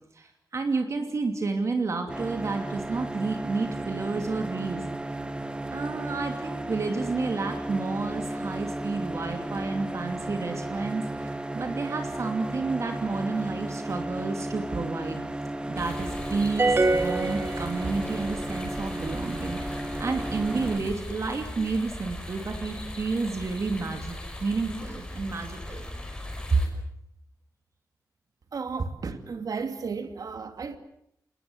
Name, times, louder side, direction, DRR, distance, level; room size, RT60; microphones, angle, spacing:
voice 1, 0.1-4.8 5.7-15.2 15.7-25.8 26.5-26.6, right 4 dB, 50° right, 2.8 m, -30 dB
sound 1, 2.1-20.8, right 1 dB, 15° right, 1.5 m, -34 dB
sound 2, 15.7-26.7, left 1 dB, 15° left, 5.5 m, -39 dB
sound 3, 16.6-18.3, right 2 dB, 35° right, 1.8 m, -25 dB
voice 2, 28.5-30.8, right 5 dB, 70° right, 2.6 m, -34 dB
28.0 x 20.0 x 8.1 m
wide cardioid pair, 180°, 6 cm